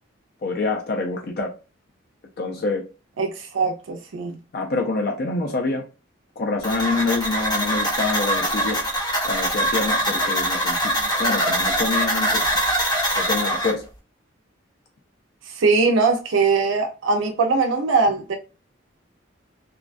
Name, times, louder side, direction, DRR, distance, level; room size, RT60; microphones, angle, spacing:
voice 1, 0.4-1.5 2.4-2.8 4.5-5.8 6.4-8.8 9.2-12.5 13.1-13.8, left 3 dB, 50° left, 0.4 m, -26 dB
voice 2, 3.2-4.4 15.5-18.4, right 4 dB, 80° right, 0.4 m, -21 dB
sound 1, 6.6-13.7, equal, 20° left, 1.1 m, -23 dB
2.5 x 2.2 x 2.3 m
head